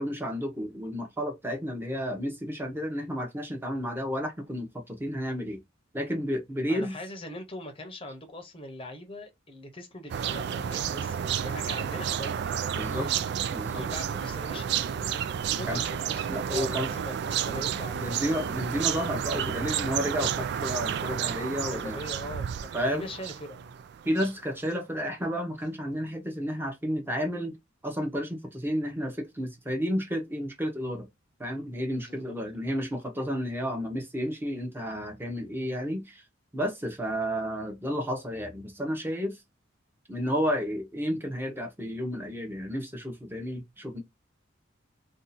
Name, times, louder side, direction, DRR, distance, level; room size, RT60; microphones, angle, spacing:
voice 1, 0.0-5.6 5.9-7.0 12.7-13.9 15.7-15.9 16.3-16.9 17.4-17.6 17.9-22.0 22.7-23.3 24.0-27.6 27.8-31.1 31.4-36.2 36.5-39.4 40.1-44.0, equal, 10° right, 0.9 m, -32 dB
voice 2, 6.7-13.3 13.7-18.2 21.6-23.7 32.0-32.4, left 1 dB, 30° left, 0.8 m, -42 dB
sound 1, 10.1-24.4, right 8 dB, 60° right, 0.3 m, -31 dB
2.7 x 2.4 x 4.0 m
head